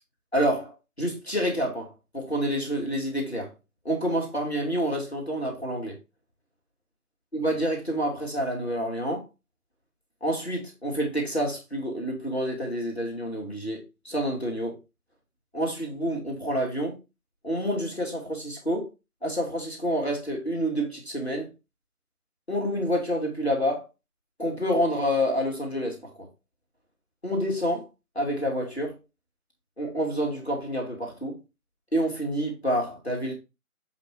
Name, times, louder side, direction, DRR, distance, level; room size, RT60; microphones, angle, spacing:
voice 1, 0.3-3.5 3.8-6.0 7.3-9.2 10.2-14.8 15.5-16.9 17.4-18.9 19.2-21.5 22.5-23.8 24.4-26.3 27.2-27.9 28.2-29.0 29.8-31.4 31.9-33.3, equal, 45° left, 2.3 m, -28 dB
7.5 x 3.8 x 4.6 m
figure-of-eight pair, 175°, 44 cm